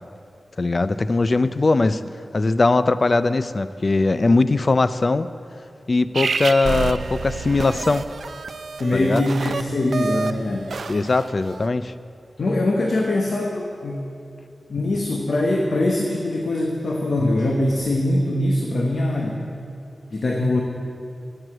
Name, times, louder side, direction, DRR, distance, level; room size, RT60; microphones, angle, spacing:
voice 1, 0.6-2.0 2.3-5.3 5.9-8.1 8.9-9.2 10.9-11.9, left 3 dB, 45° left, 14 dB, 0.4 m, -20 dB
sound 1, 6.1-11.6, right 4 dB, 80° right, 0.4 m, -29 dB
voice 2, 8.8-10.7 12.4-14.1 14.7-19.4 20.1-20.6, left 1 dB, 65° left, 0 dB, 1.0 m, -22 dB
7.8 x 7.8 x 8.7 m, 2.4 s
wide cardioid pair, 95°, 0 cm